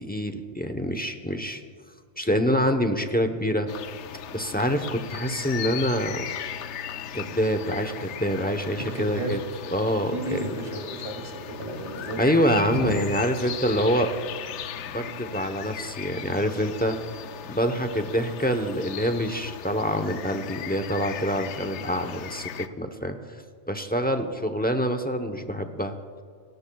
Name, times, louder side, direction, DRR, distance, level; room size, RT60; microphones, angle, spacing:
voice 1, 0.0-1.6 2.2-3.7 4.3-6.2 7.1-9.4 9.7-10.4 12.2-14.1 14.8-17.0 17.5-22.5 22.8-23.4 23.7-25.9, equal, 10° left, 7 dB, 0.7 m, -26 dB
sound 1, 3.7-22.7, left 9 dB, 80° left, 0.9 m, -37 dB
voice 2, 8.7-9.3 10.1-12.4 12.7-13.3, right 1 dB, 30° right, 0 dB, 2.5 m, -33 dB
28.0 x 13.5 x 2.3 m, 2.1 s
omnidirectional pair, 1.2 m